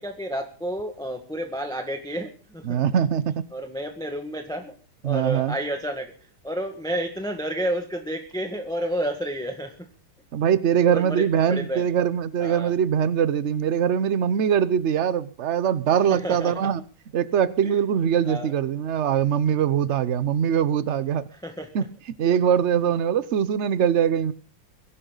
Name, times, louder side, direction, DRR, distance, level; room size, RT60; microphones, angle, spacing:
voice 1, 0.0-2.8 3.5-4.8 5.0-9.9 10.8-11.9 12.4-12.7 16.1-16.7 17.6-17.7 18.2-18.5 21.3-21.7, right 1 dB, ahead, 5 dB, 1.4 m, -31 dB
voice 2, 2.6-3.4 5.0-5.5 10.3-16.8 17.1-21.3 21.7-21.8 22.2-24.3, right 8 dB, 70° right, 16 dB, 0.6 m, -22 dB
23.0 x 11.0 x 4.0 m, 0.38 s
omnidirectional pair, 2.3 m